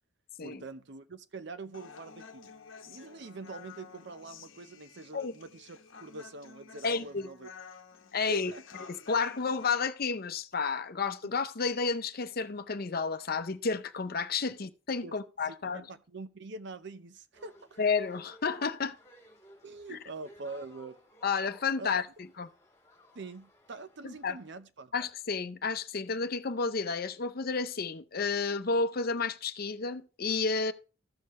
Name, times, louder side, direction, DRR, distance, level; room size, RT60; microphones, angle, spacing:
voice 1, 0.4-2.5 2.9-7.5 8.2-8.6 15.0-15.1 15.4-17.8 19.6-21.0 21.8-21.9 23.1-24.9, right 2 dB, 60° right, 0.7 m, -44 dB
Human voice, 1.7-9.7, left 6 dB, 80° left, 0.9 m, -51 dB
voice 2, 6.8-7.3 8.1-8.5 9.1-15.8 17.8-19.0 19.9-20.0 21.2-22.1 22.4-22.5 24.0-24.4 24.9-30.7, left 4 dB, 50° left, 0.7 m, -31 dB
sound 1, 17.3-24.6, equal, 15° left, 2.5 m, -57 dB
14.5 x 6.6 x 3.1 m
head